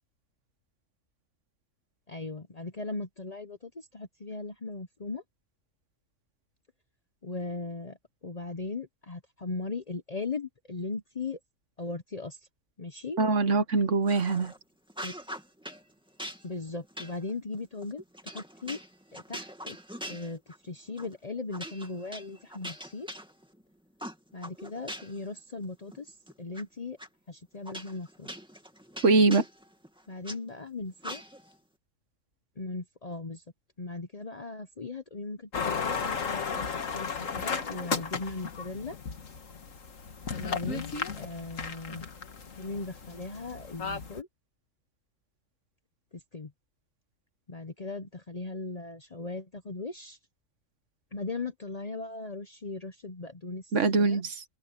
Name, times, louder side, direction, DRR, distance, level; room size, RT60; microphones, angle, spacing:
voice 1, 2.1-5.2 7.2-11.4 11.8-12.4 12.8-13.2 15.0-15.1 16.4-18.8 19.1-19.8 20.1-23.1 24.3-27.0 27.3-28.3 30.1-31.2 32.6-33.4 33.8-39.0 40.4-42.1 42.6-44.3 46.1-46.5 47.5-50.2 51.1-53.7 54.0-54.2, left 3 dB, 35° left, 0.8 m, -38 dB
voice 2, 13.2-14.5 29.0-29.4 53.7-54.4, right 3 dB, 65° right, 1.5 m, -23 dB
sound 1, 14.1-14.6 14.9-15.8 16.2-20.7 21.0-21.2 21.5-23.6 24.0-25.3 25.6-26.6 27.0-27.1 27.7-30.4 31.0-31.6, equal, 5° right, 2.3 m, -42 dB
sound 2, 35.5-44.2, left 5 dB, 70° left, 2.0 m, -35 dB
omnidirectional pair, 1.4 m